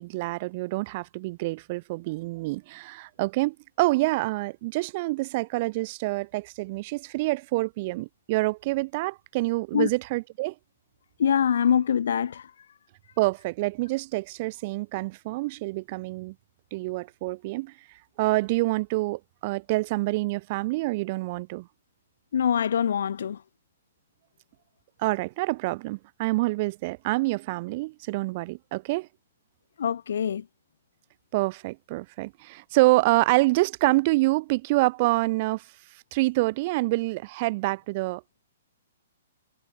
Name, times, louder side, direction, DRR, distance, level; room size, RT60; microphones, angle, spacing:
voice 1, 0.0-10.5 13.2-16.3 16.7-17.7 18.2-21.7 25.0-29.1 31.3-35.7 36.1-38.4, right 22 dB, 40° right, 0.3 m, -27 dB
voice 2, 11.2-12.5 22.3-23.4 29.8-30.4, left 8 dB, 65° left, 0.4 m, -24 dB
figure-of-eight pair, 125°, 0 cm